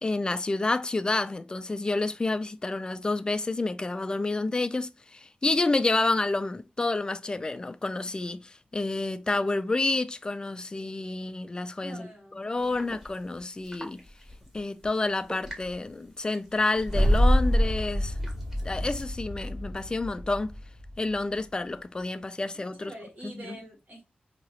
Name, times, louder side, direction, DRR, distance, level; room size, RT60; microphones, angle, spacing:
voice 1, 0.0-12.1 12.3-14.0 14.5-18.2 18.6-20.6 21.0-22.9 23.4-23.6, left 2 dB, 30° left, 0.4 m, -29 dB
voice 2, 11.8-13.0 22.5-24.0, right 1 dB, 70° right, 2.2 m, -46 dB
sound 1, 12.6-19.2, equal, 10° right, 1.4 m, -48 dB
sound 2, 16.8-21.1, equal, 40° right, 2.3 m, -26 dB
4.7 x 2.9 x 3.1 m
wide cardioid pair, 125°, 3 cm